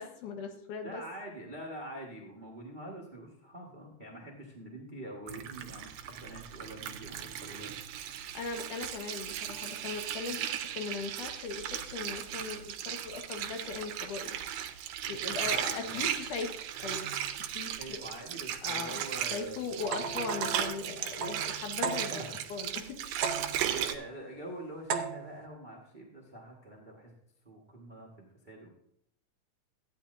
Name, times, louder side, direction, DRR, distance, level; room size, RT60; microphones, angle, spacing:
voice 1, 0.0-1.0 8.3-14.4 15.1-16.5 16.8-17.1 17.5-18.0 18.6-23.6, left 5 dB, 80° left, 4 dB, 2.8 m, -39 dB
voice 2, 0.8-7.7 15.0-16.2 17.8-19.6 19.9-20.4 22.1-22.4 23.6-27.1 27.4-28.7, right 1 dB, 30° right, -2 dB, 0.9 m, -45 dB
Water, 5.3-24.0, right 10 dB, 85° right, 2.3 m, -37 dB
sound 1, 19.8-22.4 23.2-23.8 24.9-25.5, right 6 dB, 70° right, 2.0 m, -36 dB
14.5 x 9.7 x 2.6 m, 0.74 s
omnidirectional pair, 3.6 m